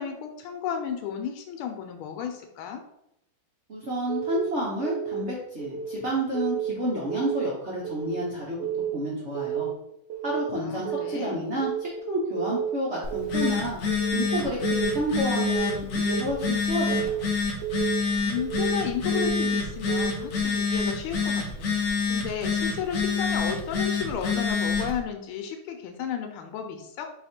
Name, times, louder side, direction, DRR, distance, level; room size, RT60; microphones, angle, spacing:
voice 1, 0.0-2.8 10.6-11.5 18.2-21.7 22.1-27.1, left 8 dB, 85° left, 5 dB, 1.5 m, -33 dB
voice 2, 3.7-8.7 8.9-9.7 10.2-13.8 14.1-17.1, right 1 dB, 50° right, -5 dB, 0.8 m, -30 dB
Keyboard (musical) / Alarm, 4.1-4.5 4.8-5.2 5.6-6.0 6.3-6.7 7.1-7.5 7.8-8.2 8.6-9.0 9.3-9.7 10.1-10.5 10.8-11.2 11.6-12.0 12.4-12.7 13.1-13.5 13.9-14.2 14.6-15.0 15.4-15.7 16.1-16.5 16.9-17.2 17.6-18.0 18.4-18.7 19.1-19.5 19.9-20.3, right 10 dB, 75° right, 1.4 m, -31 dB
Telephone, 13.0-25.0, left 5 dB, 60° left, 0.9 m, -27 dB
4.1 x 2.8 x 4.2 m, 0.80 s
omnidirectional pair, 2.3 m